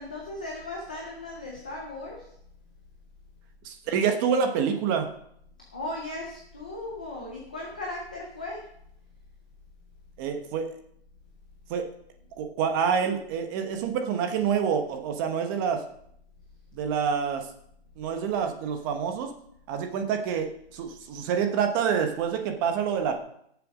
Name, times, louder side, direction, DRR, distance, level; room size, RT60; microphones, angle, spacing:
voice 1, 0.0-2.2 5.7-8.6, left 2 dB, 10° left, -2 dB, 0.4 m, -37 dB
voice 2, 3.6-5.1 10.2-10.7 11.7-11.9 12.4-15.8 16.7-17.4 18.0-19.3 19.7-23.2, right 7 dB, 20° right, 5 dB, 1.1 m, -27 dB
17.0 x 7.0 x 5.0 m, 0.70 s
hypercardioid pair, 165°, 32 cm